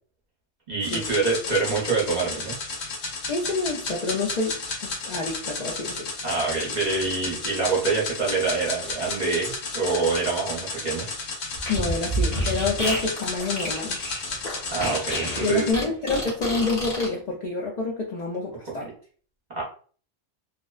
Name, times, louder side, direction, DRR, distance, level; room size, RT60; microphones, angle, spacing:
voice 1, 0.7-2.6 6.2-11.1 14.7-15.7 19.5-19.6, right 4 dB, 40° right, -5 dB, 0.8 m, -26 dB
sound 1, 0.8-15.7, left 3 dB, 90° left, 1.1 m, -33 dB
voice 2, 3.3-6.1 11.7-14.0 15.4-18.9, left 3 dB, 60° left, -2 dB, 0.4 m, -28 dB
Fart, 11.6-17.1, equal, 40° left, 0.9 m, -29 dB
2.6 x 2.1 x 2.2 m, 0.44 s
omnidirectional pair, 1.3 m